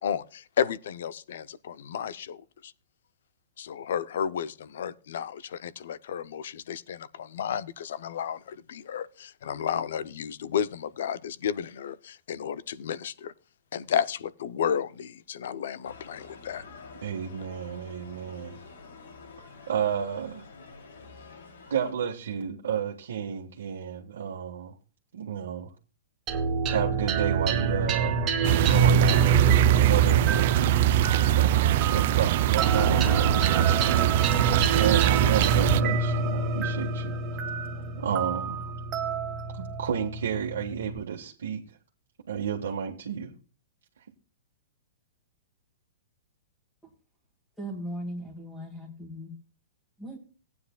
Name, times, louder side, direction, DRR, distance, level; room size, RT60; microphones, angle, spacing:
voice 1, 0.0-2.7 3.6-13.3 13.7-16.6, left 8 dB, 60° left, 0.5 m, -32 dB
sound 1, 15.8-21.9, left 4 dB, 80° left, 2.8 m, -48 dB
voice 2, 17.0-18.6 19.7-20.4 21.7-24.7 25.1-25.7 26.5-28.2 28.7-29.4 29.6-34.1 34.3-37.2 38.0-38.7 39.5-41.8 42.3-43.3, right 8 dB, 80° right, 1.5 m, -32 dB
sound 2, 26.3-41.0, right 5 dB, 20° right, 1.1 m, -27 dB
sound 3, 28.4-35.8, right 13 dB, 40° right, 0.4 m, -22 dB
voice 3, 47.6-49.3 50.0-50.2, equal, 5° left, 1.6 m, -38 dB
18.0 x 9.4 x 2.3 m
hypercardioid pair, 175°, 0 cm